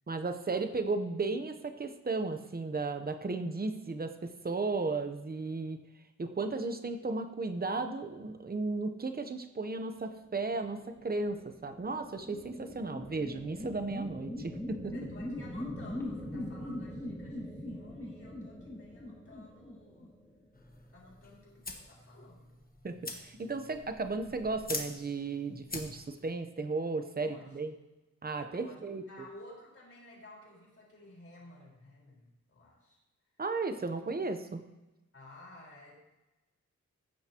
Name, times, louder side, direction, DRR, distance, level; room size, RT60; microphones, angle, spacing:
voice 1, 0.1-5.8 6.2-14.9 22.8-27.7 28.2-29.0 33.4-34.6, right 3 dB, 30° right, 7 dB, 0.8 m, -35 dB
sound 1, 10.8-20.5, left 1 dB, 10° left, 2.1 m, -42 dB
voice 2, 14.9-20.1 20.9-22.6 27.2-27.6 28.5-33.0 33.8-34.0 35.1-35.9, left 2 dB, 50° left, -4 dB, 4.4 m, -54 dB
sound 2, 20.5-26.3, left 2 dB, 30° left, 1.2 m, -44 dB
15.0 x 9.5 x 3.0 m, 1.0 s
wide cardioid pair, 155°, 30 cm